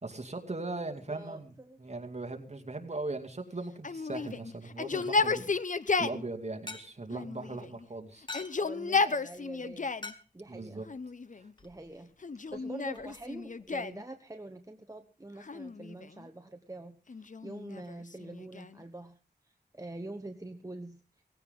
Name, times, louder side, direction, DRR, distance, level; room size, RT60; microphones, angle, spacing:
voice 1, 0.0-1.5 1.8-5.5 6.0-8.3 10.5-10.8, right 2 dB, 40° right, 3 dB, 2.5 m, -39 dB
voice 2, 0.9-1.8 8.6-9.9 10.3-10.8 11.6-12.1 12.5-19.2 19.4-21.0, right 2 dB, 20° right, 6 dB, 1.1 m, -45 dB
Yell, 3.8-6.2 7.1-7.9 8.2-10.1 10.9-11.5 12.2-14.0 15.4-16.3 17.1-18.8, left 4 dB, 50° left, 0.8 m, -33 dB
sound 1, 6.3-13.8, left 3 dB, 25° left, 1.6 m, -51 dB
18.5 x 16.5 x 3.7 m, 0.35 s
wide cardioid pair, 85°, 17 cm